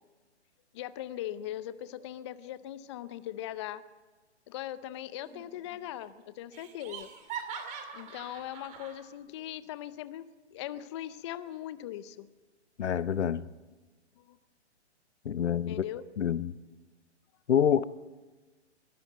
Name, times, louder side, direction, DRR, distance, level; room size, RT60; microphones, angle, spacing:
voice 1, 0.7-3.8 4.5-7.1 7.9-10.3 10.5-12.3 14.2-14.4 15.7-16.0, left 12 dB, 25° left, 0.5 m, -40 dB
Laughter, 5.2-5.8 6.0-6.1 6.5-9.0, right 7 dB, 20° right, 2.4 m, -42 dB
voice 2, 12.8-13.4 15.2-15.8 16.2-16.6 17.5-17.8, left 9 dB, 75° left, 0.9 m, -27 dB
22.0 x 13.0 x 9.1 m
hypercardioid pair, 140°, 35 cm